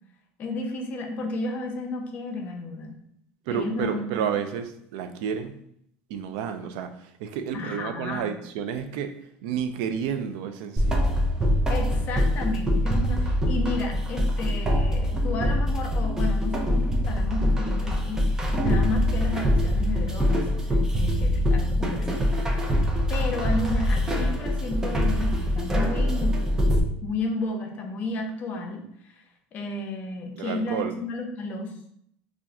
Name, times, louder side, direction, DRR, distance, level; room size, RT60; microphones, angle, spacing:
voice 1, 0.4-3.0 3.5-4.0 7.5-8.4 11.7-22.6 23.1-26.4 27.0-29.2 29.5-31.9, left 2 dB, 40° left, 2 dB, 0.6 m, -32 dB
voice 2, 3.5-5.5 6.1-9.1 9.4-11.1 30.4-30.9, right 8 dB, 75° right, 8 dB, 0.4 m, -31 dB
sound 1, 10.8-26.8, equal, 10° right, 0.4 m, -24 dB
2.4 x 2.4 x 4.1 m, 0.70 s
cardioid pair, 140°, 4 cm